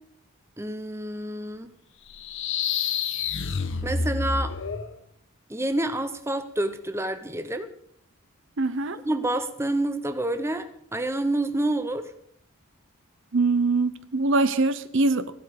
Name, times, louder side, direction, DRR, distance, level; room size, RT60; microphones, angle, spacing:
voice 1, 0.6-1.7 3.8-4.6 5.5-7.7 9.0-12.1, right 1 dB, 10° right, 9 dB, 0.8 m, -28 dB
sound 1, 2.1-4.9, left 5 dB, 60° left, 1.0 m, -28 dB
voice 2, 8.6-9.0 13.3-15.3, right 3 dB, 60° right, 13 dB, 0.7 m, -23 dB
15.5 x 12.0 x 5.0 m, 0.69 s
head